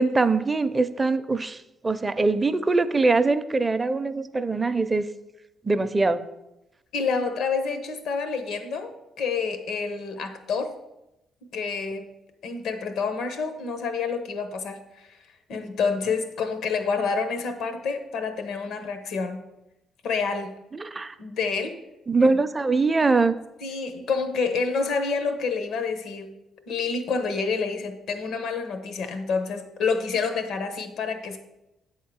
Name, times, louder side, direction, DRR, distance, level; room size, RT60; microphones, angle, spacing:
voice 1, 0.0-1.6 1.8-5.0 5.6-6.2 20.7-21.1 22.1-23.4, right 3 dB, 25° right, 11 dB, 0.5 m, -22 dB
voice 2, 6.9-10.7 11.5-12.1 12.4-15.1 15.5-19.4 20.0-20.5 21.2-21.8 22.2-22.4 23.6-26.3 26.7-31.4, left 5 dB, 80° left, 8 dB, 0.9 m, -28 dB
8.1 x 3.7 x 6.2 m, 0.93 s
cardioid pair, 90°, 0 cm